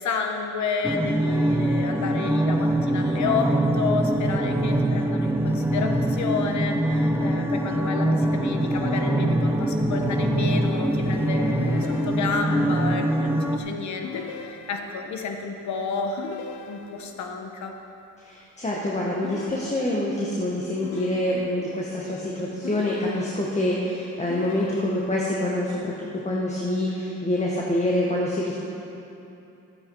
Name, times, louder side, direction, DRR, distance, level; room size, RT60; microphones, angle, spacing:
voice 1, 0.0-16.3 16.7-17.7, left 5 dB, 70° left, 4 dB, 1.2 m, -30 dB
sound 1, 0.8-13.6, right 1 dB, 10° right, 0.6 m, -23 dB
sound 2, 11.6-12.6 14.0-15.1 16.2-17.2 19.2-20.2 20.8-21.8 22.6-23.7 24.3-25.3, left 6 dB, 85° left, 0.8 m, -39 dB
voice 2, 18.2-25.9 26.2-28.5, left 1 dB, 25° left, -4 dB, 1.5 m, -26 dB
12.5 x 8.6 x 4.7 m, 2.9 s
cardioid pair, 90°, 30 cm